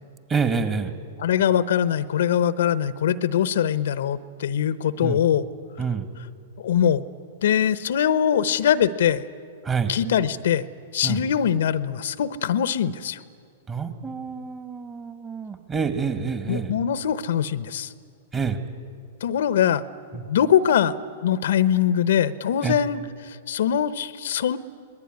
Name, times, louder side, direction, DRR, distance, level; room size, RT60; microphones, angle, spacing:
voice 1, 0.3-0.9 5.0-5.2 5.8-6.1 9.6-9.9 11.0-11.2 13.7-16.7 18.3-18.6 20.1-20.2 22.6-22.7, right 5 dB, 25° right, 8 dB, 2.3 m, -27 dB
voice 2, 1.2-5.4 6.6-7.0 7.4-9.2 9.9-10.6 10.9-13.2 16.5-17.9 19.2-19.8 20.1-24.6, left 9 dB, 70° left, 15 dB, 0.9 m, -22 dB
25.5 x 19.5 x 9.7 m, 2.2 s
hypercardioid pair, 110°, 0 cm